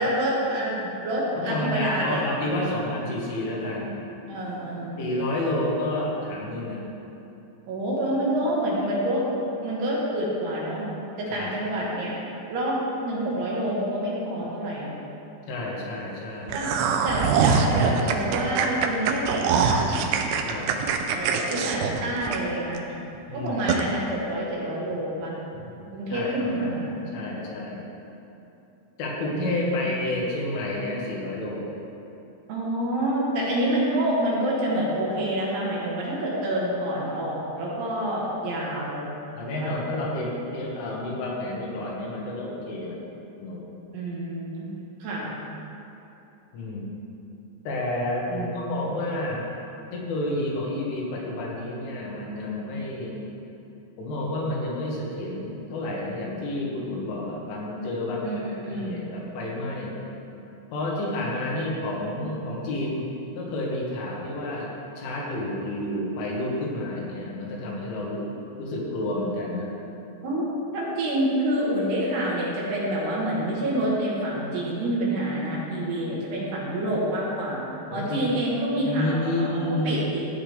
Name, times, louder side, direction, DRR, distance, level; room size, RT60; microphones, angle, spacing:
voice 1, 0.0-2.2 2.6-2.9 4.3-5.1 7.7-9.2 9.6-10.9 11.2-12.2 12.5-12.8 13.0-15.0 16.5-16.7 17.0-20.1 21.1-22.9 23.3-25.4 25.9-26.8 29.3-29.8 32.5-39.1 39.6-39.7 43.9-44.7 45.0-45.3 48.3-48.8 58.2-59.0 70.2-70.5 70.7-77.6 77.9-80.2, right 1 dB, 65° right, -5 dB, 3.3 m, -27 dB
voice 2, 1.4-4.0 5.0-6.8 11.4-11.5 15.5-16.6 20.4-20.7 23.3-23.7 25.5-25.7 26.1-27.9 29.0-31.8 39.4-43.0 43.4-43.7 46.5-46.9 47.7-49.5 49.9-53.2 54.0-58.3 58.7-60.0 60.7-63.0 63.4-64.7 65.0-68.3 68.6-69.7 77.9-78.3 78.8-80.2, left 1 dB, 85° left, -3 dB, 4.1 m, -30 dB
sound 1, 16.5-22.8 23.1-23.2 23.7-23.8, right 6 dB, 85° right, 2.3 m, -23 dB
14.0 x 8.1 x 3.5 m, 2.9 s
omnidirectional pair, 5.4 m